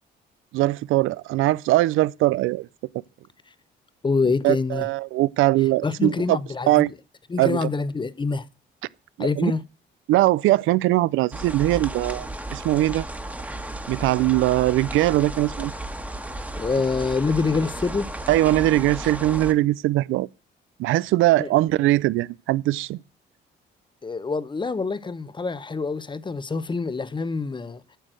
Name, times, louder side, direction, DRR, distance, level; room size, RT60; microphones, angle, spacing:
voice 1, 0.5-2.7 4.4-6.4 6.7-6.9 7.4-7.7 9.2-9.5 10.1-13.1 13.9-15.7 18.3-20.3 20.8-23.0, right 16 dB, 85° right, 0.4 m, -21 dB
voice 2, 4.0-4.9 5.8-6.8 7.3-8.5 9.2-9.6 16.6-18.1 21.4-21.5 24.0-27.8, left 4 dB, 25° left, 0.8 m, -26 dB
sound 1, 11.3-19.5, right 1 dB, 5° right, 1.3 m, -34 dB
9.1 x 6.4 x 7.5 m
cardioid pair, 90°, 20 cm